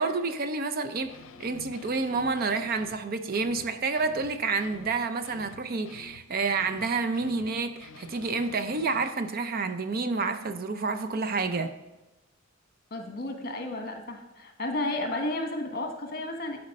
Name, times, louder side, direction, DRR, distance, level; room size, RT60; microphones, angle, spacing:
voice 1, 0.0-11.7, right 4 dB, 45° right, 9 dB, 0.5 m, -29 dB
sound 1, 1.0-3.0 3.3-9.1, left 5 dB, 80° left, 0.6 m, -49 dB
voice 2, 12.9-16.6, left 2 dB, 45° left, 4 dB, 1.2 m, -32 dB
11.5 x 4.3 x 5.3 m, 1.0 s
head